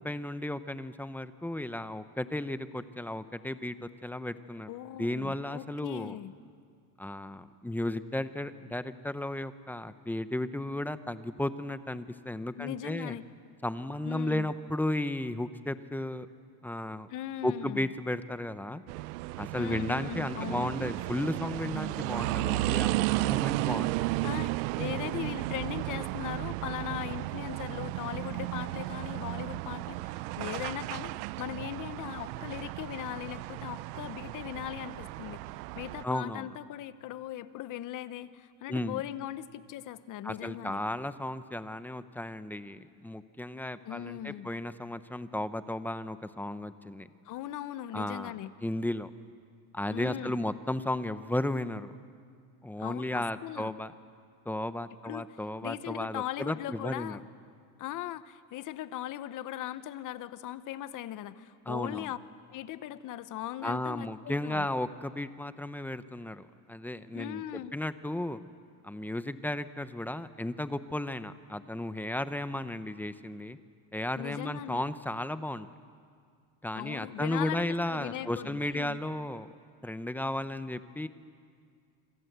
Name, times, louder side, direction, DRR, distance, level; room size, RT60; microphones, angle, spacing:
voice 1, 0.0-4.7 5.0-6.2 7.0-13.2 13.6-16.3 16.6-17.1 17.4-18.8 19.4-23.9 36.0-36.6 38.7-39.0 40.2-47.1 47.9-48.3 48.6-49.1 49.7-51.9 52.6-53.9 54.5-57.2 61.7-62.1 63.6-68.4 68.8-73.6 73.9-75.7 76.6-79.5 79.8-81.1, left 1 dB, 5° left, 12 dB, 0.6 m, -34 dB
voice 2, 4.7-6.3 12.6-13.2 14.0-14.5 17.1-17.9 19.6-20.7 24.2-35.4 35.7-40.8 43.8-44.5 47.2-48.5 49.9-50.4 52.8-53.7 55.0-55.3 55.6-57.2 57.8-62.2 62.5-64.7 67.1-67.7 74.2-74.8 76.7-79.0, left 12 dB, 45° left, 14 dB, 1.0 m, -39 dB
sound 1, 18.9-36.0, right 20 dB, 90° right, 0.6 m, -34 dB
27.0 x 25.5 x 8.0 m, 2.1 s
cardioid pair, 140°, 46 cm